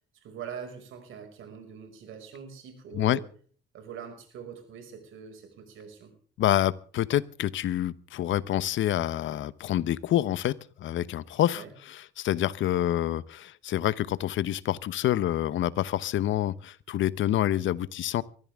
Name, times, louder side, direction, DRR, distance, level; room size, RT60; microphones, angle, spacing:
voice 1, 0.2-3.3 3.7-6.1 11.5-11.7, right 7 dB, 80° right, 6 dB, 6.0 m, -43 dB
voice 2, 6.4-18.2, left 12 dB, 75° left, 18 dB, 0.9 m, -27 dB
23.0 x 14.5 x 3.6 m, 0.43 s
cardioid pair, 90°, 20 cm